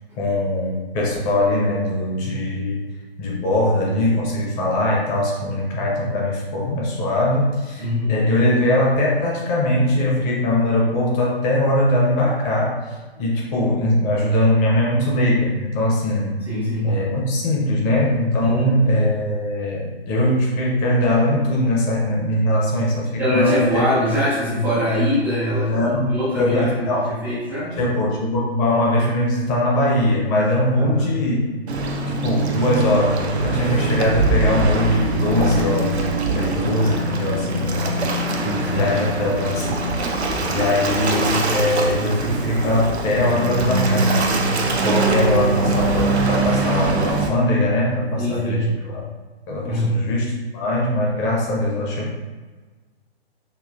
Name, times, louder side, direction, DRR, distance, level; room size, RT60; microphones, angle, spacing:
voice 1, 0.2-2.8 3.2-16.4 16.8-23.8 25.7-26.1 26.4-27.1 27.8-31.4 32.1-38.0 38.5-40.2 40.5-44.5 44.8-49.0 49.5-52.2, left 1 dB, 20° left, -3 dB, 0.7 m, -21 dB
voice 2, 7.8-8.1 16.4-17.0 18.4-18.7 23.2-27.8 30.8-31.2 38.3-38.9 48.1-48.7 49.6-50.0, equal, 5° right, -15 dB, 0.3 m, -23 dB
Waves surf, 31.7-47.3, right 2 dB, 80° right, 0.6 m, -22 dB
5.3 x 2.4 x 2.5 m, 1.4 s
figure-of-eight pair, 125°, 32 cm